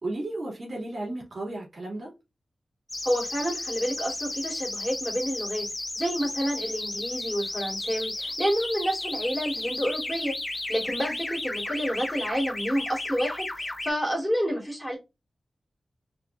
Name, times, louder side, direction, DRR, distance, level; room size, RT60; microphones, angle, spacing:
voice 1, 0.0-2.1 10.9-11.0, right 2 dB, 60° right, 2.5 m, -34 dB
sound 1, 2.9-13.9, left 2 dB, 30° left, 1.2 m, -33 dB
voice 2, 3.0-5.7 5.9-15.0, equal, ahead, 3.1 m, -29 dB
4.5 x 4.2 x 2.5 m
cardioid pair, 55°, 0 cm